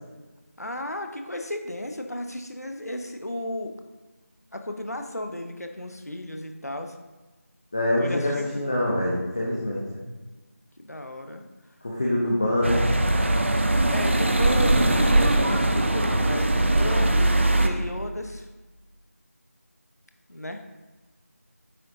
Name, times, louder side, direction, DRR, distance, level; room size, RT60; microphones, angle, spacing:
voice 1, 0.6-3.7 4.5-7.0 8.0-8.5 10.8-11.4 12.4-12.6 13.9-18.5 20.3-20.6, left 1 dB, 90° left, 5 dB, 1.0 m, -34 dB
voice 2, 7.7-10.0 11.8-12.9 16.8-16.9, left 1 dB, 25° left, -4 dB, 0.7 m, -25 dB
sound 1, 12.6-17.7, right 1 dB, 50° right, 0.7 m, -21 dB
9.1 x 6.3 x 2.7 m, 1.2 s
figure-of-eight pair, 170°, 8 cm